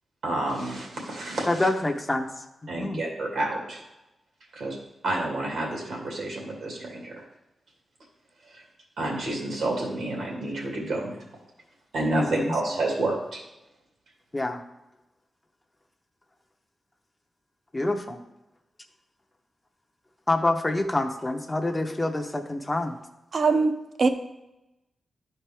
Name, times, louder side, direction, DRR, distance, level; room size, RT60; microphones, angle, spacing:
voice 1, 0.2-1.7 2.7-3.8 4.5-4.8 5.0-7.2 8.5-8.6 9.0-11.1 11.9-13.4, right 2 dB, 80° right, -1 dB, 2.4 m, -29 dB
voice 2, 1.5-2.3 2.6-3.0 12.1-12.5 14.3-14.6 17.7-18.2 20.3-23.0, left 2 dB, 15° left, 5 dB, 0.6 m, -26 dB
voice 3, 23.3-24.1, right 4 dB, 50° right, 8 dB, 0.6 m, -22 dB
12.5 x 4.4 x 3.4 m, 0.95 s
wide cardioid pair, 135°, 0 cm